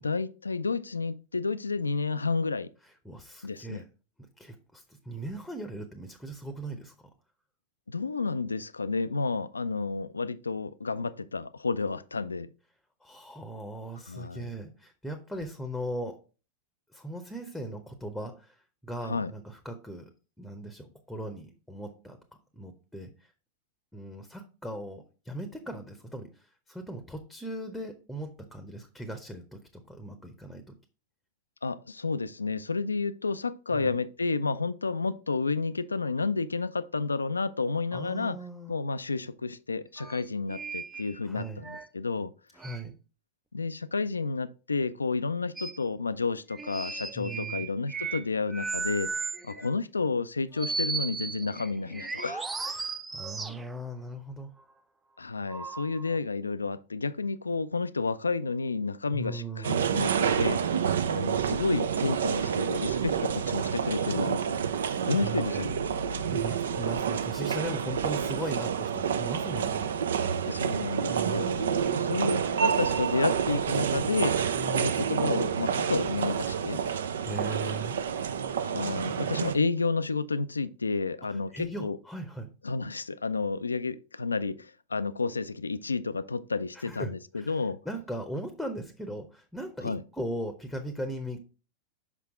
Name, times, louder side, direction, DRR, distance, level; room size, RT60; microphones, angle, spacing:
voice 1, 0.0-2.7 3.4-3.8 7.9-12.5 14.1-14.5 19.0-19.3 31.6-38.4 38.7-42.3 43.5-52.4 55.2-60.8 61.1-64.6 65.0-65.9 70.4-76.8 78.6-82.0 82.6-87.8 89.8-90.0, left 4 dB, 75° left, 0.4 m, -31 dB
voice 2, 3.0-3.8 4.4-6.9 13.0-16.2 16.9-20.1 20.4-22.2 22.5-23.3 23.9-30.7 33.7-34.0 37.9-38.8 41.2-41.6 42.6-42.9 47.1-47.7 52.7-54.5 59.1-59.7 64.8-65.7 66.3-69.9 71.0-71.5 74.5-74.9 77.2-78.0 81.5-82.5 86.7-91.4, right 1 dB, ahead, 0.8 m, -38 dB
sound 1, 40.0-40.2 40.5-41.9 42.6-42.8 45.6-45.8 46.5-48.2 48.5-49.7 50.6-53.8 55.5-56.2, right 4 dB, 15° right, 0.5 m, -36 dB
sound 2, 59.6-79.6, right 7 dB, 65° right, 0.4 m, -29 dB
6.1 x 5.4 x 3.7 m
figure-of-eight pair, 90°, 0 cm